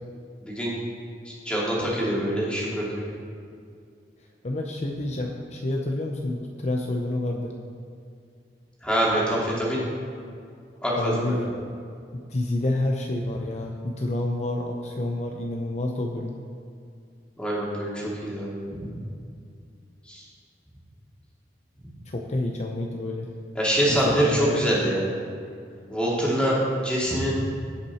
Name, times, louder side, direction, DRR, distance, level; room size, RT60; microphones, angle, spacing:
voice 1, 0.4-0.7 1.2-3.1 8.8-9.8 10.8-11.2 17.4-18.9 20.1-20.2 23.5-25.0 25.9-27.4, equal, 5° left, -6 dB, 2.5 m, -25 dB
voice 2, 4.4-7.5 11.0-11.5 12.1-16.3 22.1-23.3 23.9-24.6, left 1 dB, 40° left, 1 dB, 0.7 m, -28 dB
17.5 x 6.0 x 4.3 m, 2.3 s
head